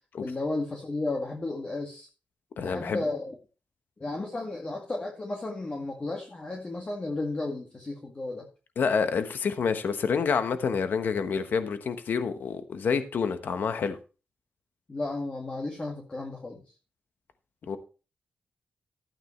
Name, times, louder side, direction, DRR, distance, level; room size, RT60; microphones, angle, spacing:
voice 1, 0.2-2.1 2.6-3.4 4.0-8.5 14.9-16.6, left 2 dB, 35° left, 2.0 m, -33 dB
voice 2, 2.6-3.0 8.8-14.0 17.7-17.8, left 6 dB, 75° left, 1.1 m, -28 dB
12.5 x 8.9 x 3.2 m
cardioid pair, 80°, 3 cm